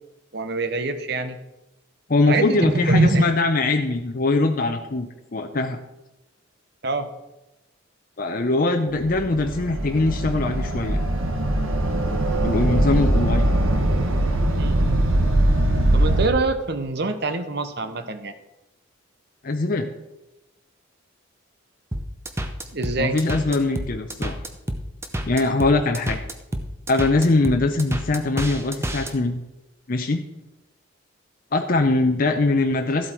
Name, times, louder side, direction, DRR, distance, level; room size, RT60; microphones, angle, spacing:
voice 1, 0.3-1.4 2.3-3.3 6.8-7.1 14.6-14.8 15.9-18.3 22.7-23.2, right 2 dB, 50° right, 9 dB, 0.9 m, -24 dB
voice 2, 2.1-5.1 5.3-5.8 8.2-11.0 12.4-13.5 19.4-19.9 23.0-24.4 25.3-26.2 26.9-29.4 29.9-30.2 31.5-33.1, left 2 dB, 40° left, 4 dB, 0.6 m, -22 dB
sound 1, 9.0-16.3, right 1 dB, 75° right, 1.3 m, -21 dB
sound 2, 21.9-29.1, equal, 10° right, 0.7 m, -29 dB
13.0 x 8.0 x 4.5 m, 0.97 s
head